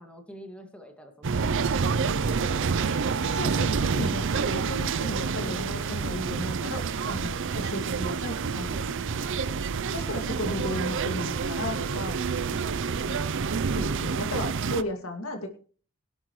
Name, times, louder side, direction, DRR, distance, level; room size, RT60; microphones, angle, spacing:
voice 1, 0.0-3.2 5.4-6.4, equal, 5° left, 4 dB, 2.1 m, -47 dB
sound 1, 1.2-14.8, right 5 dB, 60° right, 0.6 m, -28 dB
voice 2, 3.2-8.8 9.9-12.2 13.0-13.4 13.7-15.5, left 1 dB, 70° left, 5 dB, 2.3 m, -35 dB
17.0 x 11.5 x 3.2 m, 0.41 s
head